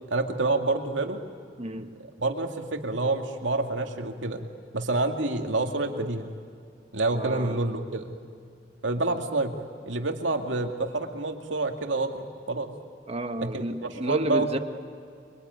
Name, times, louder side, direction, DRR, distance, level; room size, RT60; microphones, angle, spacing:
voice 1, 0.1-1.2 2.2-4.4 4.7-6.3 6.9-8.1 8.8-12.1 12.5-12.7 13.4-13.6 14.1-14.6, right 2 dB, 85° right, 4 dB, 2.4 m, -28 dB
voice 2, 1.6-2.0 7.1-7.6 13.1-14.6, right 1 dB, 35° right, 8 dB, 1.3 m, -31 dB
25.0 x 24.5 x 9.6 m, 2.3 s
head